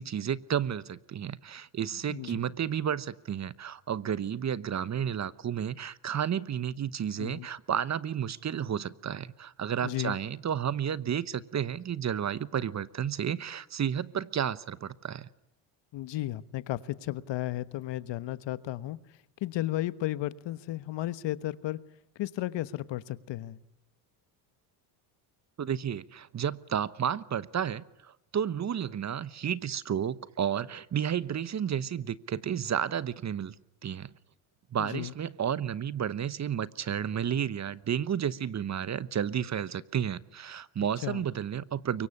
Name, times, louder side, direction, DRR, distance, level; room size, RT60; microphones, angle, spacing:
voice 1, 0.0-15.3 25.6-33.5 33.8-34.1 34.7-42.1, right 8 dB, 35° right, 18 dB, 1.0 m, -32 dB
voice 2, 1.9-2.4 7.2-7.5 9.8-10.2 15.9-21.8 22.1-23.6 34.8-35.1 41.0-41.2, left 15 dB, 60° left, 15 dB, 1.3 m, -34 dB
24.0 x 23.0 x 9.9 m, 0.87 s
supercardioid pair, 80°, 49 cm